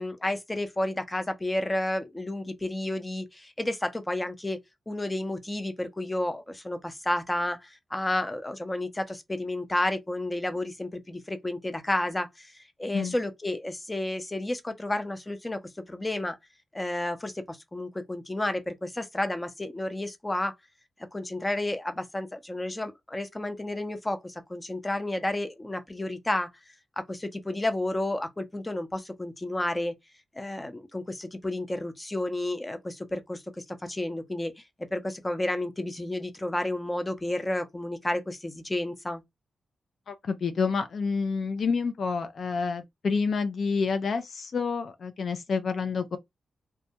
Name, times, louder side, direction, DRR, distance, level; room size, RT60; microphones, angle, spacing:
voice 1, 0.0-4.6 4.9-15.6 15.9-16.4 16.7-20.5 21.1-26.5 27.1-29.9 30.4-34.6 34.9-39.2, left 1 dB, 20° left, 0.6 m, -31 dB
voice 2, 40.1-46.2, left 5 dB, 65° left, 0.3 m, -28 dB
2.2 x 2.1 x 2.7 m
cardioid pair, 60°, 0 cm